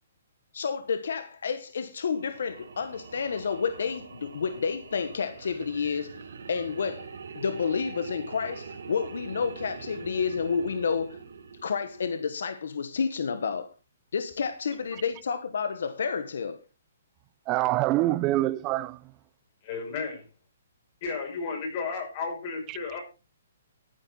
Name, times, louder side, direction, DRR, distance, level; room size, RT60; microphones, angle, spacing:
voice 1, 0.5-7.1 7.3-11.2 11.6-13.7 14.1-16.6, left 6 dB, 75° left, 1.3 m, -30 dB
sound 1, 2.0-12.4, right 5 dB, 75° right, 3.1 m, -43 dB
voice 2, 17.5-19.1 22.7-22.8, right 16 dB, 20° right, 0.5 m, -25 dB
voice 3, 19.6-20.2 21.0-23.0, left 5 dB, 35° left, 5.5 m, -33 dB
13.5 x 9.5 x 4.3 m
hypercardioid pair, 165°, 0 cm